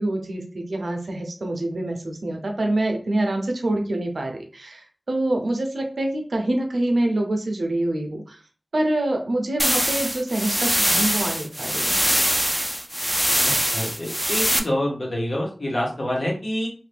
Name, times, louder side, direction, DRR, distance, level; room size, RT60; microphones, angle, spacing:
voice 1, 0.0-8.4 8.7-12.0, right 1 dB, 85° right, 3 dB, 0.7 m, -26 dB
sound 1, 9.6-14.6, equal, 5° right, 0.4 m, -23 dB
voice 2, 13.4-16.7, equal, 60° left, -2 dB, 1.1 m, -27 dB
2.6 x 2.5 x 3.4 m, 0.40 s
wide cardioid pair, 55°, 0 cm